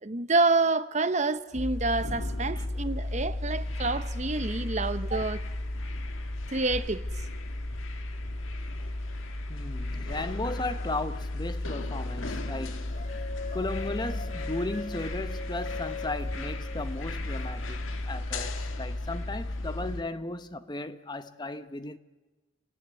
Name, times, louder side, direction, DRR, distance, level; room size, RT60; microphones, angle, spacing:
voice 1, 0.0-5.5 6.5-7.0, right 3 dB, 35° right, 0.9 m, -28 dB
sound 1, 1.6-20.0, left 1 dB, 75° left, 1.7 m, -34 dB
voice 2, 9.5-13.1 13.5-22.0, left 2 dB, 20° left, 0.8 m, -36 dB
sound 2, 12.9-17.4, left 4 dB, 35° left, 1.5 m, -41 dB
27.5 x 18.5 x 9.6 m
head